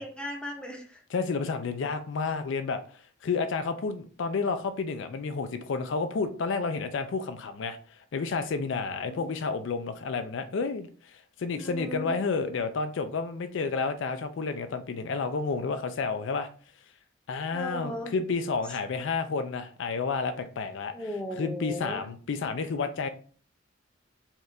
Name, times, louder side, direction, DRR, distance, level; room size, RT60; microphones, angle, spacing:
voice 1, 0.0-1.0 9.1-9.2 11.6-12.1 17.5-18.1 20.9-22.1, left 1 dB, 5° left, 0.6 m, -37 dB
voice 2, 1.1-2.8 3.2-7.8 8.1-16.5 17.3-20.9 21.3-23.1, left 4 dB, 60° left, 0.4 m, -30 dB
4.4 x 2.4 x 3.2 m
head